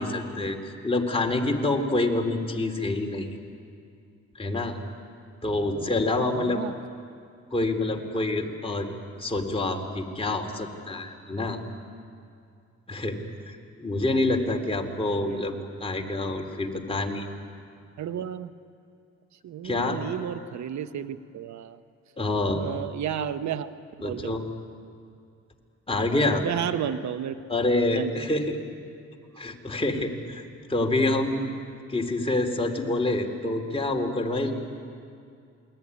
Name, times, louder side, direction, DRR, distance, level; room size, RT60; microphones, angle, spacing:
voice 1, 0.0-3.4 4.4-4.8 5.4-6.6 7.5-8.9 9.2-11.6 12.9-13.2 13.5-15.5 15.8-17.3 19.6-20.0 22.2-22.6 24.0-24.4 25.9-26.4 27.5-28.6 29.4-30.4 30.7-31.4 31.9-34.5, left 2 dB, 20° left, 2 dB, 3.7 m, -27 dB
voice 2, 6.3-6.7 15.3-15.4 18.0-18.5 19.4-21.8 22.6-23.7 24.0-24.4 26.4-27.4 27.9-28.1, right 9 dB, 70° right, 11 dB, 1.1 m, -32 dB
28.5 x 21.0 x 9.9 m, 2.4 s
cardioid pair, 80°, 30 cm